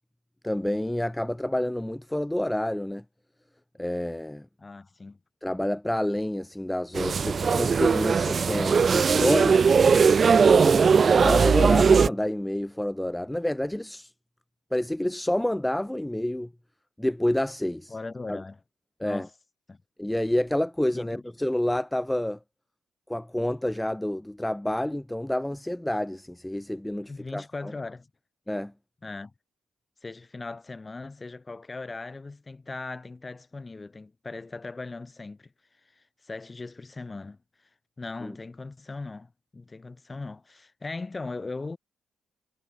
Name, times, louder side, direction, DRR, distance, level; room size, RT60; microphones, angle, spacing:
voice 1, 0.4-3.0 3.8-4.5 5.4-9.6 10.4-14.1 14.7-16.5 17.0-17.9 18.3-18.4 19.0-19.3 20.0-22.4 23.1-27.7 28.5-28.7 38.2-38.3, left 1 dB, 5° left, 1.5 m, -28 dB
voice 2, 4.6-5.2 17.9-18.6 19.0-19.3 19.7-19.8 20.9-21.2 27.1-28.1 29.0-29.3 30.0-35.5 35.8-37.7 38.0-41.8, left 3 dB, 25° left, 6.5 m, -39 dB
sound 1, 6.9-12.1, right 5 dB, 45° right, 1.5 m, -19 dB
cardioid pair, 90°, 0 cm